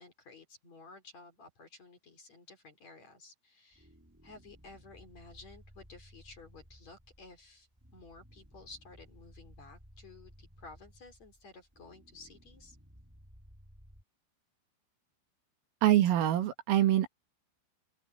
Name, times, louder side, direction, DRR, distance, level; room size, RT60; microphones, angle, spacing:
voice 1, 0.0-3.9 4.2-12.8, left 3 dB, 35° left, 4.6 m, -54 dB
sound 1, 3.7-14.0, equal, 5° right, 5.5 m, -58 dB
voice 2, 15.8-17.1, right 12 dB, 80° right, 4.8 m, -25 dB
open air
omnidirectional pair, 5.8 m